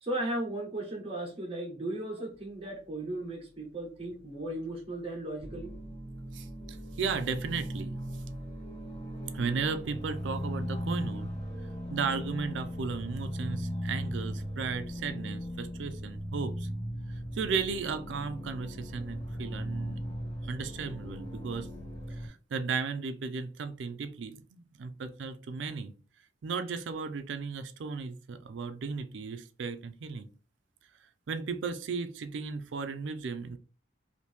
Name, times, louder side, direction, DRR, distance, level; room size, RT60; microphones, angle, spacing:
voice 1, 0.0-5.7, right 1 dB, 30° right, 1.2 m, -36 dB
sound 1, 5.4-22.3, equal, 15° left, 1.8 m, -38 dB
voice 2, 6.3-8.0 9.3-11.3 11.9-16.7 17.3-20.0 20.4-21.7 22.1-25.9 26.4-30.3 31.3-33.6, right 5 dB, 75° right, 0.4 m, -35 dB
2.9 x 2.7 x 3.4 m
head